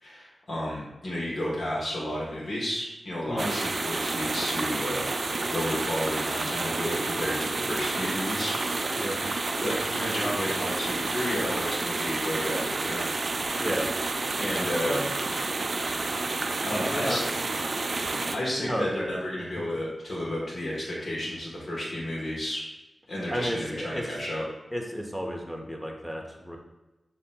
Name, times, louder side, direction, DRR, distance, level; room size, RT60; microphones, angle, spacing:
voice 1, 0.0-9.0 9.6-13.0 14.4-15.0 16.6-17.2 18.3-22.6 23.1-24.4, left 1 dB, 60° left, -6 dB, 1.2 m, -32 dB
sound 1, 3.4-18.4, right 3 dB, 60° right, 0.4 m, -30 dB
voice 2, 13.6-13.9 14.8-15.1 16.7-17.3 18.6-19.2 23.3-24.0 24.7-26.6, equal, 10° left, 1 dB, 0.8 m, -32 dB
7.3 x 2.8 x 2.2 m, 1.1 s
cardioid pair, 40°, 0 cm